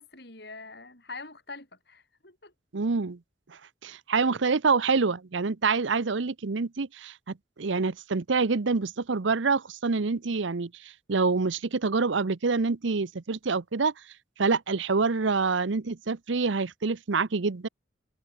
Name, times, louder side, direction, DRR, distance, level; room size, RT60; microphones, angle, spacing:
voice 1, 0.0-2.5, left 3 dB, 55° left, 7.2 m, -44 dB
voice 2, 2.7-3.2 3.5-7.1 7.6-13.9 14.4-17.7, right 4 dB, 75° right, 0.8 m, -26 dB
head